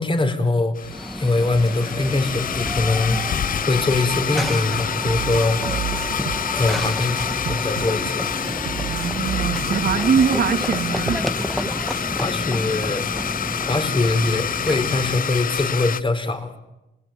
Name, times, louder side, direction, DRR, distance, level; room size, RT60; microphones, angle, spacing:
voice 1, 0.0-3.2 3.7-5.6 6.1-6.2 6.5-7.2 7.5-8.3 12.2-13.1 13.7-16.6, left 2 dB, 25° left, 8 dB, 4.5 m, -22 dB
Domestic sounds home sounds, 0.7-16.0, left 8 dB, 45° left, 0.9 m, -27 dB
Run / Train, 0.8-15.3, equal, ahead, 1.4 m, -31 dB
sound 1, 5.1-12.2, right 12 dB, 80° right, 1.0 m, -33 dB
voice 2, 8.9-11.2, right 6 dB, 55° right, 7 dB, 2.4 m, -22 dB
27.5 x 22.0 x 9.4 m, 1.0 s
cardioid pair, 90°, 20 cm